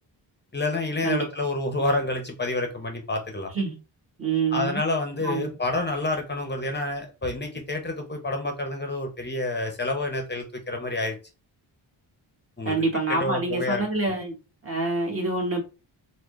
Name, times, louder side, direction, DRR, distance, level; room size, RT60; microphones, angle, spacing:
voice 1, 0.5-3.5 4.5-11.2 12.6-12.8 13.1-14.1, left 2 dB, 20° left, 0.7 m, -28 dB
voice 2, 4.2-4.8 5.2-5.5 12.6-14.3 14.6-15.6, right 3 dB, 30° right, 1.2 m, -26 dB
3.7 x 2.2 x 3.1 m
wide cardioid pair, 125°, 48 cm